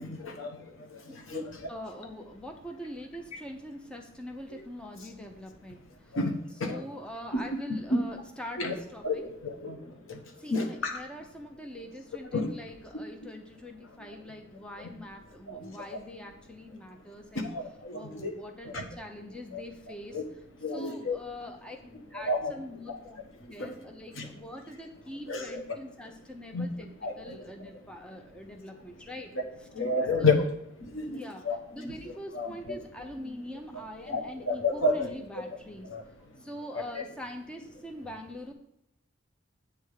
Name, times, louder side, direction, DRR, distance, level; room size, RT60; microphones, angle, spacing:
voice 1, 0.0-1.4 6.1-6.3 6.6-6.8 7.9-8.0 8.6-8.7 9.0-9.8 10.1-10.2 10.5-11.0 12.3-12.5 14.8-14.9 15.5-15.7 17.3-18.3 18.6-18.8 19.5-19.6 20.1-20.2 20.6-21.2 22.2-22.5 22.9-23.0 23.6-23.7 24.2-24.3 25.3-25.6 26.5-26.7 27.0-27.5 29.3-29.4 29.7-30.4 30.9-31.9 32.3-32.8 33.7-33.8 34.1-35.1 35.8-36.0 36.9-37.0, left 3 dB, 90° left, 4 dB, 1.2 m, -30 dB
voice 2, 1.1-5.8 6.6-9.2 10.4-17.5 17.9-20.2 20.7-23.2 23.5-26.9 27.2-29.3 30.2-30.4 31.1-31.4 31.7-35.9 36.4-38.5, left 1 dB, 5° left, 2 dB, 0.8 m, -43 dB
8.7 x 3.6 x 6.4 m, 0.80 s
head